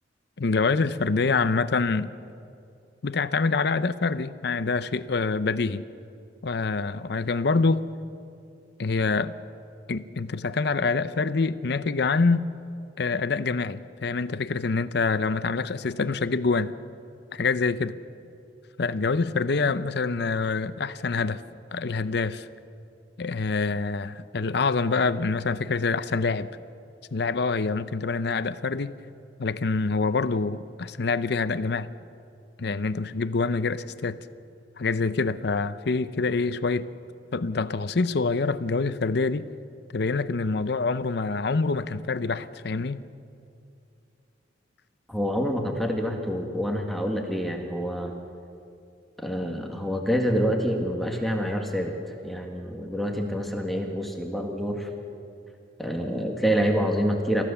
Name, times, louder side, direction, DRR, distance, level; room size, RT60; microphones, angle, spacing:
voice 1, 0.4-2.1 3.0-5.8 6.4-7.8 8.8-9.3 9.9-12.4 13.0-16.7 17.3-18.0 18.8-21.4 21.7-22.5 23.2-26.5 27.1-28.9 29.4-31.9 32.6-34.2 34.8-36.9 37.3-39.5 39.9-43.0, left 4 dB, 65° left, 0.6 m, -26 dB
voice 2, 45.1-48.1 49.2-51.9 52.2-54.9 55.8-57.4, equal, ahead, 1.8 m, -27 dB
27.5 x 15.0 x 7.0 m
head